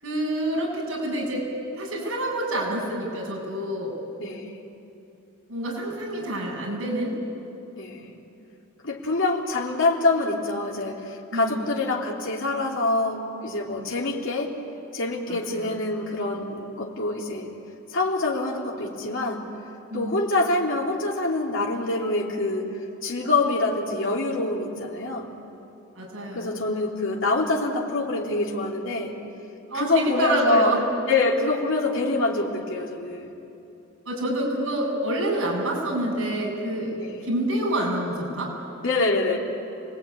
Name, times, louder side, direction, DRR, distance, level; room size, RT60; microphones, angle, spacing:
voice 1, 0.0-1.5 1.8-3.9 5.5-7.2 11.3-11.8 15.3-15.7 19.9-20.2 25.9-26.5 29.7-30.9 34.1-37.0 37.2-38.5, right 1 dB, 75° right, -2 dB, 8.0 m, -27 dB
voice 2, 4.2-4.5 7.8-8.2 8.8-14.5 14.9-17.5 17.9-19.4 19.9-22.7 23.0-25.3 26.3-29.1 29.7-30.7 31.1-33.3 37.0-37.2 38.8-39.4, left 2 dB, 60° left, -2 dB, 3.3 m, -25 dB
29.0 x 19.5 x 9.7 m, 2.7 s
head